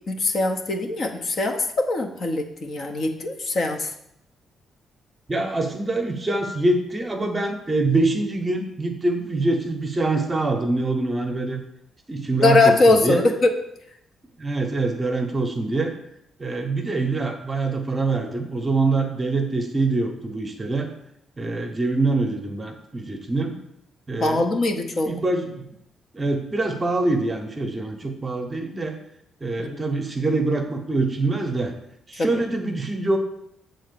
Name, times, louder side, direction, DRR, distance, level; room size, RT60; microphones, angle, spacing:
voice 1, 0.1-3.9 12.4-13.5 24.2-25.1 29.6-29.8 32.2-32.4, left 2 dB, 40° left, 4 dB, 0.8 m, -21 dB
voice 2, 5.3-11.6 12.1-13.2 14.4-15.9 16.4-20.9 21.4-23.5 24.1-24.8 25.0-25.7 26.1-29.0 29.4-31.7 32.1-33.2, right 2 dB, 20° right, 4 dB, 0.9 m, -24 dB
7.7 x 4.0 x 6.8 m, 0.78 s
cardioid pair, 160°, 0 cm